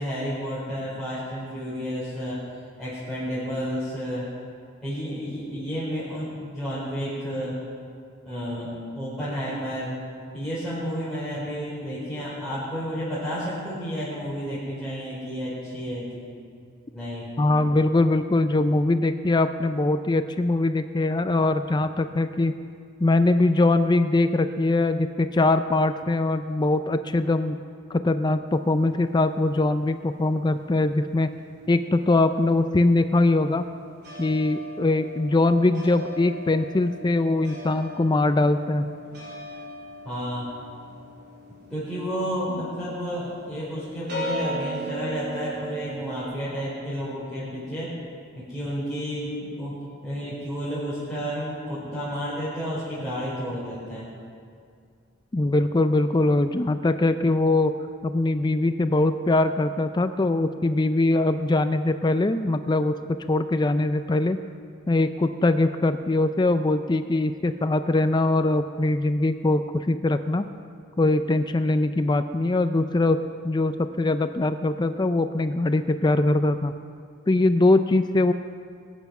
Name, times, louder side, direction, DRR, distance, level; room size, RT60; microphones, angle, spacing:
voice 1, 0.0-2.4 2.8-4.3 4.8-7.6 8.2-10.0 10.3-16.3 16.9-17.3 40.0-40.5 41.7-47.9 48.3-49.7 50.0-54.0, equal, ahead, -13 dB, 4.6 m, -31 dB
voice 2, 17.4-22.5 23.0-27.6 27.9-31.3 31.7-33.6 34.2-38.9 55.3-57.7 58.0-63.0 63.3-64.4 64.9-70.5 71.0-73.2 73.4-76.7 77.3-78.3, left 2 dB, 20° left, 10 dB, 0.4 m, -22 dB
sound 1, 28.5-31.2 31.4-46.2, equal, 50° right, 4.1 m, -38 dB
21.0 x 9.3 x 6.0 m, 2.2 s
head